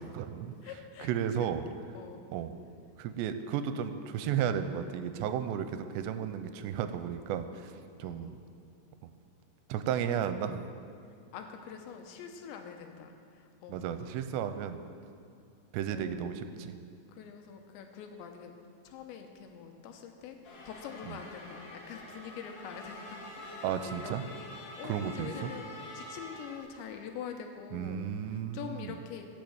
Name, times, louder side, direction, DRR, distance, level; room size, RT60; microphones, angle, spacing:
voice 1, 0.0-0.6 1.0-1.6 2.3-2.5 3.0-7.7 8.0-8.3 9.7-10.7 13.7-14.8 15.7-16.8 21.1-21.2 23.6-24.2 24.8-25.5 27.7-28.9, right 8 dB, 85° right, 10 dB, 2.7 m, -33 dB
voice 2, 0.6-1.1 1.3-1.5 1.9-2.2 8.0-8.4 11.3-13.8 15.9-16.3 17.1-18.5 18.8-20.4 20.7-24.2 24.8-25.7 25.9-28.1 28.3-29.3, left 7 dB, 85° left, 4 dB, 3.2 m, -45 dB
sound 1, 20.4-26.6, left 1 dB, 55° left, 3.2 m, -46 dB
15.5 x 6.9 x 7.9 m, 2.3 s
omnidirectional pair, 5.1 m